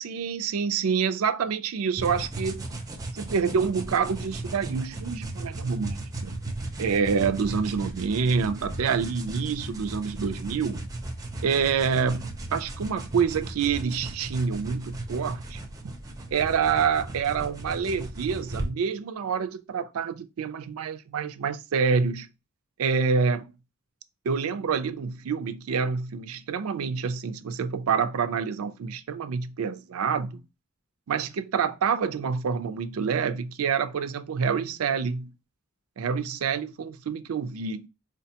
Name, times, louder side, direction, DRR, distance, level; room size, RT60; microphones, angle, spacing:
voice 1, 0.0-2.7 3.1-6.4 6.8-10.9 11.4-15.9 16.3-22.3 22.8-23.5 24.3-30.4 31.1-35.3 36.0-37.9, right 6 dB, 85° right, 0.4 m, -27 dB
sound 1, 2.0-18.7, right 2 dB, 15° right, 0.5 m, -36 dB
4.4 x 2.1 x 2.8 m
head